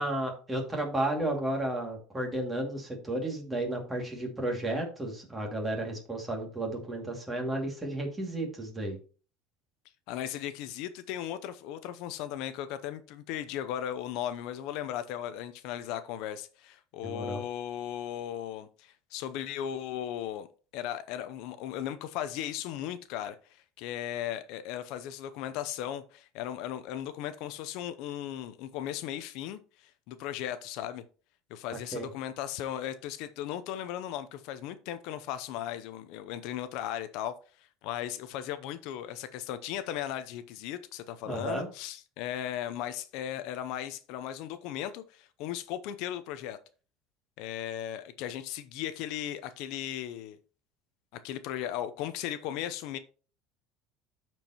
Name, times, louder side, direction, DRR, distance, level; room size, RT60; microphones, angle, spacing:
voice 1, 0.0-9.0 17.0-17.4 31.9-32.1 41.3-41.7, right 1 dB, 10° right, 2.3 m, -33 dB
voice 2, 10.1-20.5 20.7-31.0 31.5-46.6 47.4-50.4 51.1-53.0, left 11 dB, 65° left, 0.6 m, -37 dB
13.0 x 4.5 x 2.9 m
cardioid pair, 145°, 0 cm